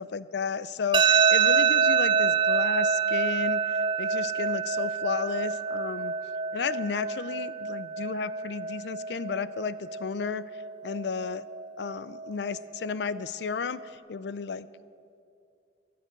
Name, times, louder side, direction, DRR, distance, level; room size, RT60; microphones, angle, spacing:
voice 1, 0.0-3.6 4.0-6.1 6.5-10.4 10.8-11.5 11.8-13.8 14.1-14.7, left 5 dB, 65° left, 16 dB, 0.4 m, -33 dB
sound 1, 0.9-13.9, right 6 dB, 25° right, 0.3 m, -27 dB
15.0 x 6.8 x 8.8 m, 2.5 s
head